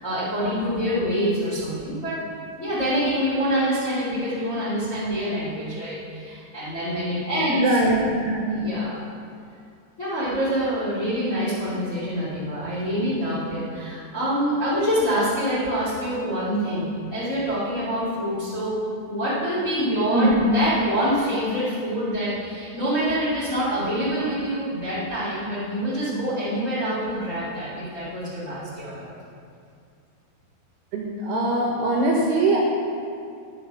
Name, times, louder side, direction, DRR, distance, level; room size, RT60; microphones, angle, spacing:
voice 1, 0.0-2.2 2.6-7.8 8.5-9.0 10.0-18.7 19.0-29.1, equal, 25° left, -9 dB, 1.9 m, -26 dB
voice 2, 7.5-8.7 20.1-20.4 30.9-32.8, right 1 dB, 70° right, -2 dB, 2.7 m, -22 dB
10.5 x 7.5 x 5.9 m, 2.4 s
omnidirectional pair, 5.6 m